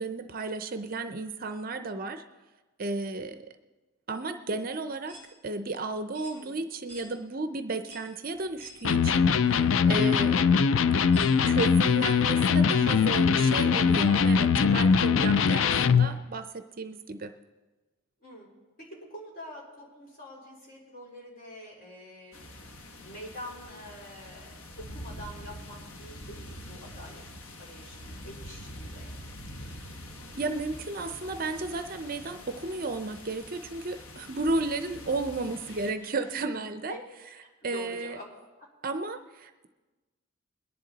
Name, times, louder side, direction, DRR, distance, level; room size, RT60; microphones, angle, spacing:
voice 1, 0.0-2.2 2.8-3.5 4.1-5.2 5.4-10.6 10.9-17.3 30.4-37.0 37.6-38.2 38.8-39.7, right 3 dB, 45° right, 9 dB, 0.6 m, -33 dB
sound 1, 5.1-5.3 6.1-6.4 6.9-7.1 7.9-8.1 8.6-8.8 9.6-9.7 11.1-11.3, right 1 dB, 10° left, 5.3 m, -48 dB
voice 2, 6.3-6.6 18.2-18.5 18.8-22.3 23.0-27.2 27.6-29.1 35.7-36.1 36.9-37.0 37.6-38.3 38.6-38.7, equal, 45° left, -4 dB, 4.1 m, -46 dB
Electric guitar, 8.8-16.1, left 6 dB, 65° left, 0.4 m, -22 dB
sound 2, 22.3-35.9, left 1 dB, 85° left, 1.1 m, -45 dB
22.0 x 10.5 x 4.0 m, 1.2 s
head